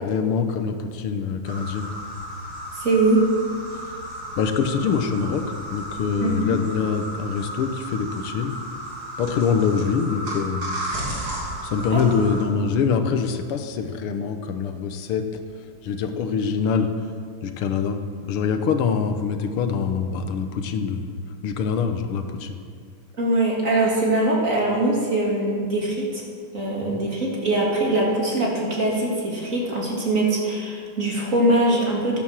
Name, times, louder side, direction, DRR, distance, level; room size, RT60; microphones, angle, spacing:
voice 1, 0.0-1.9 4.4-5.4 5.7-8.6 9.2-10.7 11.6-15.2 15.8-16.9 17.4-21.1 21.4-22.6 26.8-27.0, left 6 dB, 90° left, 7 dB, 1.9 m, -24 dB
sound 1, 1.4-12.4, equal, 80° right, 3.7 m, -34 dB
voice 2, 2.7-3.3 6.2-6.6 11.9-12.0 23.2-26.2 26.5-32.2, right 2 dB, 35° right, -3 dB, 3.0 m, -22 dB
13.0 x 10.5 x 7.5 m, 2.1 s
omnidirectional pair, 2.4 m